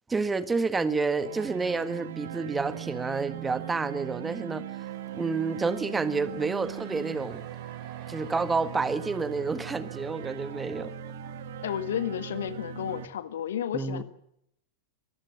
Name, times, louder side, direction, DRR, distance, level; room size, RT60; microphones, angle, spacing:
voice 1, 0.1-4.7 5.1-7.4 8.1-10.9 13.7-14.0, right 4 dB, 15° right, 1.7 m, -29 dB
sound 1, 1.2-13.0, right 11 dB, 60° right, 1.5 m, -39 dB
sound 2, 4.8-13.1, right 7 dB, 35° right, 6.0 m, -55 dB
voice 2, 11.6-14.0, left 9 dB, 60° left, 1.6 m, -32 dB
23.5 x 15.0 x 9.8 m
figure-of-eight pair, 90°, 0 cm